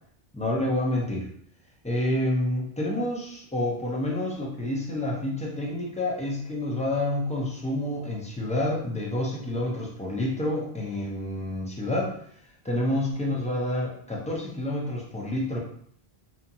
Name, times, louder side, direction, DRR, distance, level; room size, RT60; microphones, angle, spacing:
voice 1, 0.3-1.3 1.8-12.1 12.6-15.6, left 1 dB, 10° left, -3 dB, 0.3 m, -28 dB
2.7 x 2.4 x 2.7 m, 0.63 s
omnidirectional pair, 1.1 m